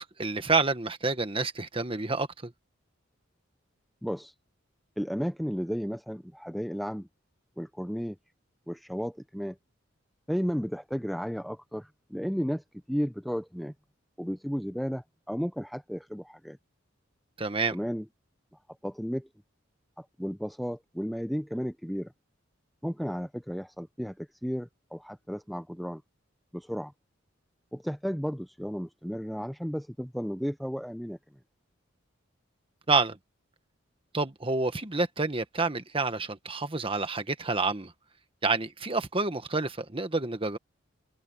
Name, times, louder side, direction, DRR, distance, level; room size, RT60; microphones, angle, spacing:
voice 1, 0.0-2.5 17.4-17.8 32.9-33.2 34.1-37.9 38.4-40.6, right 3 dB, 25° right, 1.4 m, -28 dB
voice 2, 4.0-4.3 5.0-7.1 7.6-8.2 8.7-9.6 10.3-13.7 14.2-16.6 17.7-18.1 18.8-19.3 20.0-22.1 22.8-26.0 26.5-26.9 27.7-31.2, equal, ahead, 0.7 m, -33 dB
head